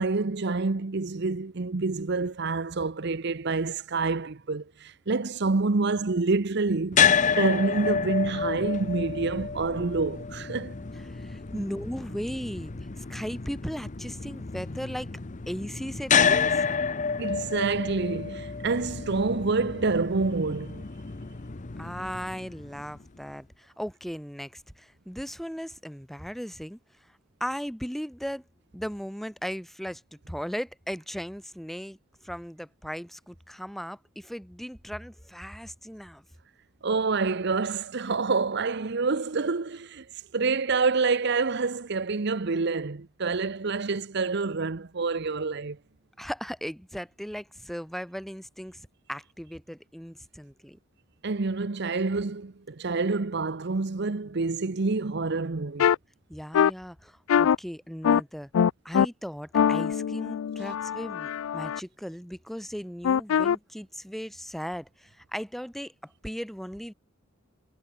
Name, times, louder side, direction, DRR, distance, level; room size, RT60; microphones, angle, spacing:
voice 1, 0.0-10.7 11.5-11.6 17.2-20.9 36.8-40.1 40.3-45.8 51.2-55.9, right 3 dB, 55° right, 0.8 m, -27 dB
sound 1, 6.9-23.1, left 6 dB, 40° left, 0.8 m, -29 dB
voice 2, 11.1-15.1 15.5-16.6 21.8-27.1 27.4-28.4 28.7-36.2 46.2-50.8 56.3-58.5 58.8-66.9, equal, ahead, 2.1 m, -37 dB
sound 2, 55.8-56.0 56.5-56.7 57.3-57.6 58.0-58.2 58.5-59.1 59.5-61.8 63.0-63.6, left 8 dB, 85° left, 0.4 m, -23 dB
head